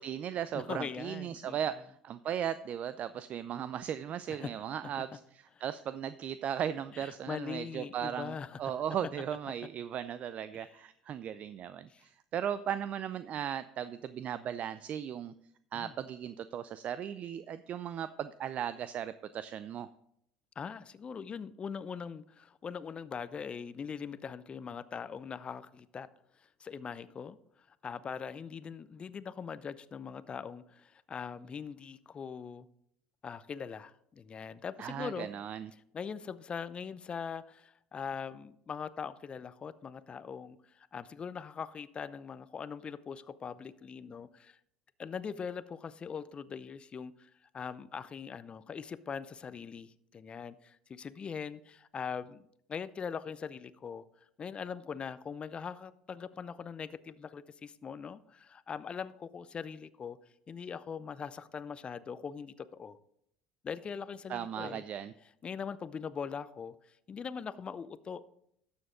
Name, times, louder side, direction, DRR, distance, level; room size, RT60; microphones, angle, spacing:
voice 1, 0.0-15.3 15.7-19.9 34.8-35.7 64.3-65.1, right 9 dB, 50° right, 14 dB, 0.4 m, -37 dB
voice 2, 0.5-1.6 4.3-4.5 4.8-5.0 6.9-8.6 10.6-10.7 11.9-12.0 15.7-15.9 20.6-26.1 26.6-27.4 27.7-32.7 33.2-35.3 35.9-44.6 45.0-54.1 54.4-60.2 60.5-63.0 63.6-64.8 65.4-68.2, left 6 dB, 35° left, 16 dB, 0.6 m, -41 dB
12.0 x 7.1 x 3.8 m, 0.73 s
hypercardioid pair, 70°, 3 cm